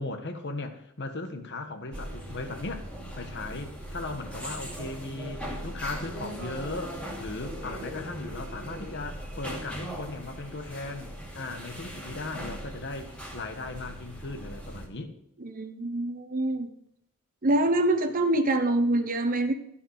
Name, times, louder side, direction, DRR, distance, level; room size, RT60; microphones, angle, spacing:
voice 1, 0.0-2.8 3.2-15.1, left 2 dB, 50° left, 7 dB, 1.5 m, -37 dB
sound 1, 1.9-14.9, equal, 5° left, 2.7 m, -39 dB
voice 2, 15.4-16.7 17.4-19.5, right 1 dB, 40° right, 6 dB, 0.9 m, -25 dB
14.5 x 5.8 x 6.6 m, 0.73 s
head